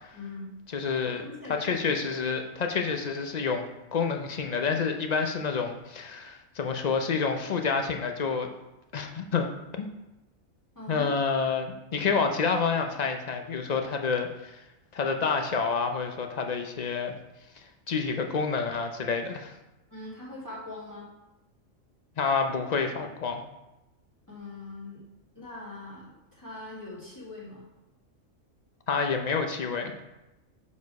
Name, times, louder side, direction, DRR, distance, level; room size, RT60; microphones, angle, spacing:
voice 1, 0.1-0.5 0.9-2.1 10.8-11.2 19.9-21.1 24.3-25.0 25.3-27.7, left 2 dB, 15° left, -7 dB, 1.9 m, -41 dB
voice 2, 0.7-1.2 1.5-8.5 8.9-9.5 9.8-9.9 10.9-14.6 14.9-17.1 17.9-19.5 22.2-23.4 28.9-29.9, left 5 dB, 45° left, 4 dB, 0.6 m, -28 dB
7.3 x 4.3 x 4.6 m, 0.96 s
omnidirectional pair, 1.4 m